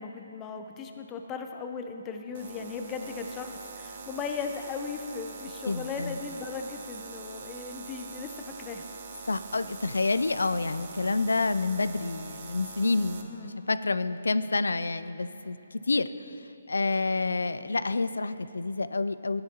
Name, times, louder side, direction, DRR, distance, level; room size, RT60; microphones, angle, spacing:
voice 1, 0.0-9.2 13.2-13.5, left 5 dB, 15° left, 5 dB, 0.6 m, -37 dB
sound 1, 2.3-13.2, right 5 dB, 45° right, 0.8 m, -44 dB
voice 2, 5.7-6.2 9.3-16.3 16.7-19.4, left 3 dB, 90° left, 13 dB, 0.4 m, -28 dB
14.0 x 10.5 x 2.9 m, 2.9 s
hypercardioid pair, 155°, 0 cm